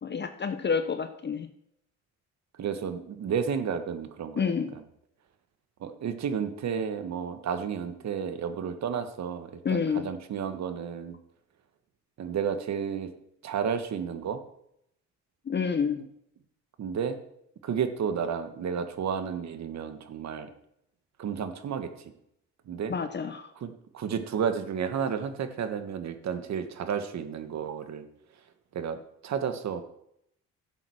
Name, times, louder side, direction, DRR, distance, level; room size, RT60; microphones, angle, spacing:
voice 1, 0.0-1.5 4.4-4.7 9.6-10.1 15.5-16.0 22.9-23.5, left 6 dB, 35° left, 8 dB, 0.9 m, -28 dB
voice 2, 2.6-4.8 5.8-11.2 12.2-13.1 13.4-14.4 16.8-17.2 17.6-20.5 21.2-22.1 22.7-22.9 23.6-28.0 28.7-29.8, right 7 dB, 65° right, 9 dB, 1.5 m, -32 dB
11.5 x 7.8 x 6.4 m, 0.75 s
cardioid pair, 90°, 30 cm